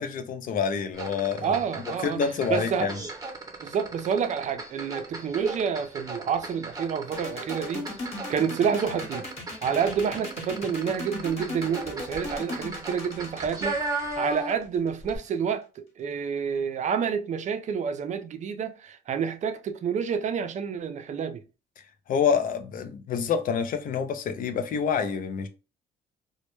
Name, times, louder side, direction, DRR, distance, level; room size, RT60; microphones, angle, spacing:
voice 1, 0.0-1.6 2.0-3.0 22.1-25.5, left 6 dB, 60° left, 0.5 m, -27 dB
sound 1, 0.9-14.7 15.0-15.2, right 2 dB, 20° right, 0.8 m, -36 dB
voice 2, 1.4-2.2 2.5-2.9 3.6-7.9 8.3-9.3 9.6-21.4, right 7 dB, 45° right, 0.4 m, -28 dB
sound 2, 7.1-14.9, left 2 dB, 40° left, 1.1 m, -37 dB
2.1 x 2.1 x 3.0 m
supercardioid pair, 70°, 16 cm